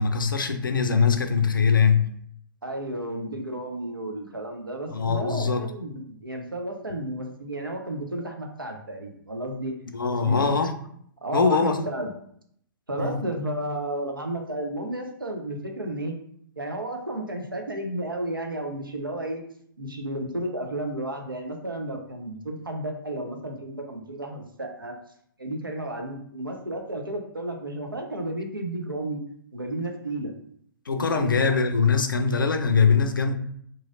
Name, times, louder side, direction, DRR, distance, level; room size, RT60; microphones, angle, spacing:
voice 1, 0.0-2.1 4.9-5.7 9.9-10.8 11.3-11.8 13.0-13.1 30.9-33.3, left 5 dB, 75° left, 0.4 m, -22 dB
voice 2, 2.6-9.7 10.1-10.5 11.2-12.1 12.9-16.2 16.6-19.4 19.8-24.9 25.4-29.2 29.5-30.3 30.9-31.6, right 1 dB, 85° right, 0.5 m, -32 dB
3.0 x 2.6 x 2.5 m
figure-of-eight pair, 115°, 11 cm